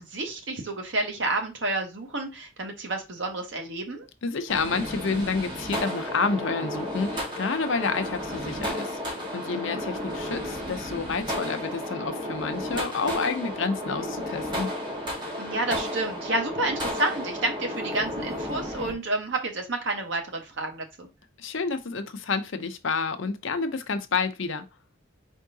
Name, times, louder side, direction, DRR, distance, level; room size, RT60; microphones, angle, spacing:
voice 1, 0.0-4.1 9.5-9.8 15.4-21.1, right 2 dB, 65° right, 1.1 m, -30 dB
voice 2, 4.2-14.7 21.4-24.6, left 4 dB, 70° left, 0.6 m, -29 dB
sound 1, 4.5-18.9, equal, 25° right, 1.4 m, -33 dB
4.6 x 3.6 x 2.7 m
head